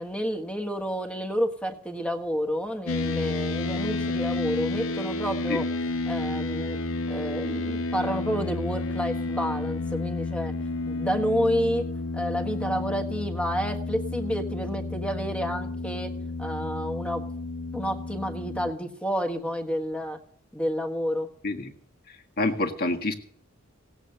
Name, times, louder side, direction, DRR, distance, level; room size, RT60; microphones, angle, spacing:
voice 1, 0.0-5.7 6.1-6.8 7.1-10.5 10.9-11.9 12.1-16.1 16.4-17.2 17.7-20.2 20.5-21.3, equal, 5° left, 6 dB, 1.4 m, -29 dB
sound 1, 2.9-18.7, left 3 dB, 90° left, 1.0 m, -31 dB
voice 2, 22.4-23.1, left 2 dB, 50° left, 3 dB, 1.7 m, -26 dB
17.5 x 8.3 x 6.7 m, 0.62 s
head